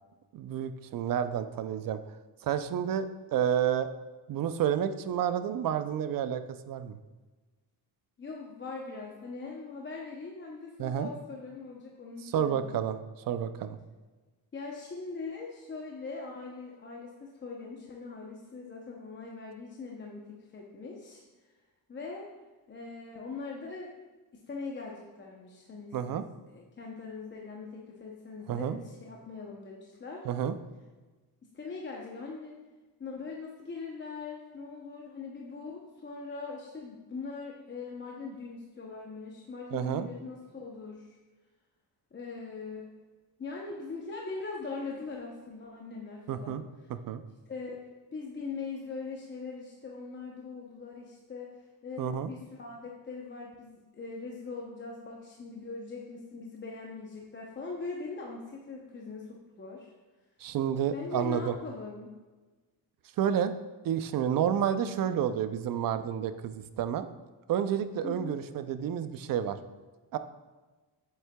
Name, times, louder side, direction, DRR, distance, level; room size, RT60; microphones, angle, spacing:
voice 1, 0.3-2.0 2.4-3.9 4.3-7.0 10.8-11.1 12.2-13.0 13.3-13.8 25.9-26.2 28.5-28.8 30.2-30.6 39.7-40.1 46.3-46.6 46.9-47.2 52.0-52.3 60.4-61.5 63.2-63.5 63.8-67.1 67.5-69.6 70.1-70.2, right 9 dB, 55° right, 11 dB, 0.5 m, -30 dB
voice 2, 8.2-12.8 14.5-21.2 21.9-22.3 22.7-23.9 24.3-26.2 26.5-30.3 31.5-32.6 33.0-41.1 42.1-42.9 43.4-46.6 47.5-47.8 48.1-51.5 51.8-59.9 60.9-62.1 68.0-68.4, left 4 dB, 30° left, -1 dB, 0.7 m, -41 dB
8.1 x 7.4 x 2.2 m, 1.3 s
cardioid pair, 135°, 41 cm